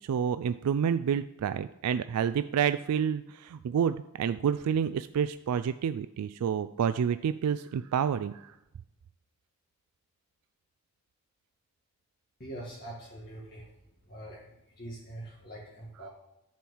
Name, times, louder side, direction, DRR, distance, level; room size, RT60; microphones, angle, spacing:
voice 1, 0.0-8.5, right 8 dB, 90° right, 12 dB, 0.3 m, -29 dB
voice 2, 12.4-13.7 14.1-16.1, right 1 dB, 45° left, -5 dB, 1.8 m, -44 dB
10.5 x 4.5 x 7.2 m, 0.90 s
head